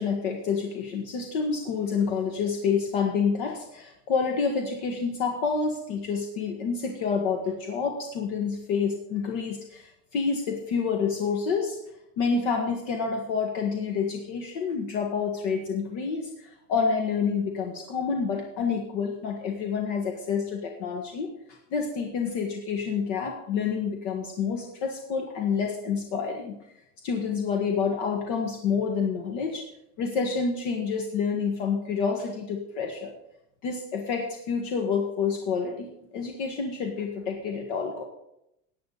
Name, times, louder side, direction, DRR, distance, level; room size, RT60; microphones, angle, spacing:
voice 1, 0.0-11.8 12.2-21.3 21.7-26.6 27.0-29.7 30.0-33.1 33.6-38.0, left 5 dB, 70° left, 2 dB, 1.9 m, -28 dB
15.5 x 9.1 x 4.1 m, 0.80 s
cardioid pair, 170°, 37 cm